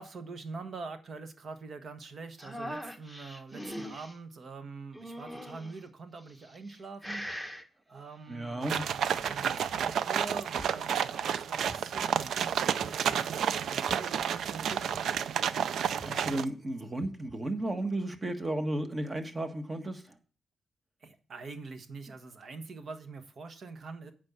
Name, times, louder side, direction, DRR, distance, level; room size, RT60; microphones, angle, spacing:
voice 1, 0.0-7.3 7.9-16.3 21.0-24.1, right 4 dB, 60° right, 1.4 m, -45 dB
sound 1, 2.4-4.1 4.9-5.8 6.4-6.8 7.0-7.6 9.0-9.7, equal, 10° right, 1.6 m, -41 dB
voice 2, 8.3-8.8 15.7-20.1, right 1 dB, 30° right, 1.6 m, -34 dB
sound 2, 8.6-16.4, right 8 dB, 80° right, 0.5 m, -30 dB
sound 3, 10.6-11.0 11.7-12.2 12.8-13.3 13.9-14.2 14.9-15.3 16.0-16.3 17.0-17.4, left 2 dB, 15° left, 0.9 m, -50 dB
8.9 x 5.4 x 7.2 m
cardioid pair, 60°, 0 cm